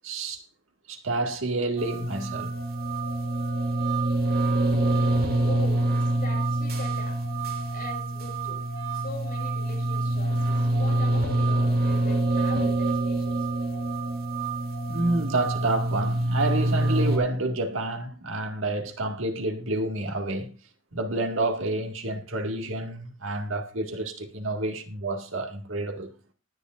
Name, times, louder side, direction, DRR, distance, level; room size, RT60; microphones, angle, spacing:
voice 1, 0.0-0.4 0.9-2.5 14.9-20.6 20.9-26.1, right 2 dB, 80° right, 2.0 m, -29 dB
sound 1, 1.8-17.2, right 2 dB, 50° right, 2.6 m, -26 dB
voice 2, 4.7-7.2 7.7-8.7 8.9-13.8, left 2 dB, 45° left, 5.0 m, -41 dB
19.5 x 10.0 x 2.5 m
head